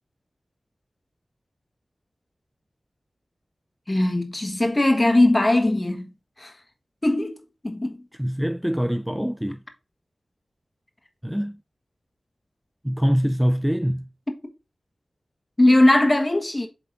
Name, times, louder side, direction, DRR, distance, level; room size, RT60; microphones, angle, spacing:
voice 1, 3.9-6.1 6.4-6.5 7.0-7.4 7.6-8.0 15.6-16.7, left 1 dB, 30° left, 1.5 m, -19 dB
voice 2, 8.2-9.6 11.2-11.6 12.8-14.0, equal, 5° right, 0.4 m, -24 dB
8.1 x 3.4 x 3.9 m
cardioid pair, 45°, 0 cm